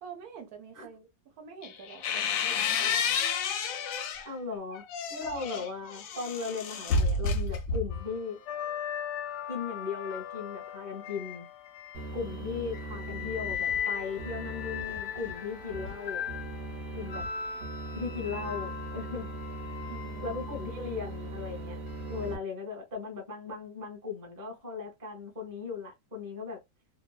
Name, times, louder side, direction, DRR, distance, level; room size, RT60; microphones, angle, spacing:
voice 1, 0.0-3.3 5.2-5.7 19.9-20.9, right 6 dB, 70° right, 1.1 m, -48 dB
sound 1, 1.6-4.3 4.7-8.1, left 4 dB, 70° left, 0.9 m, -30 dB
voice 2, 4.2-4.8 5.1-8.4 9.5-11.5 12.1-16.2 16.9-17.2 17.9-19.3 20.2-21.8 22.1-26.6, left 5 dB, 15° right, 0.8 m, -37 dB
sound 2, 7.9-12.2 12.7-20.8 21.9-22.1, left 9 dB, 90° left, 1.2 m, -38 dB
sound 3, 11.9-22.4, right 1 dB, 50° right, 1.0 m, -40 dB
2.9 x 2.2 x 2.2 m
omnidirectional pair, 1.7 m